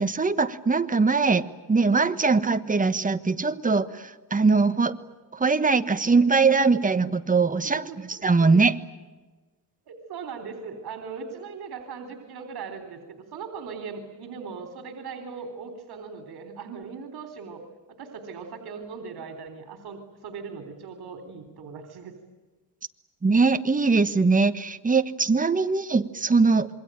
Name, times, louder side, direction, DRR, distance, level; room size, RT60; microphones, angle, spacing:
voice 1, 0.0-5.0 5.3-7.8 8.2-8.8 23.2-26.7, right 4 dB, 20° right, 10 dB, 1.3 m, -21 dB
voice 2, 7.8-8.5 9.9-17.6 17.9-22.2, right 5 dB, 75° right, 6 dB, 3.6 m, -39 dB
27.0 x 22.5 x 9.1 m, 1.3 s
cardioid pair, 125°, 38 cm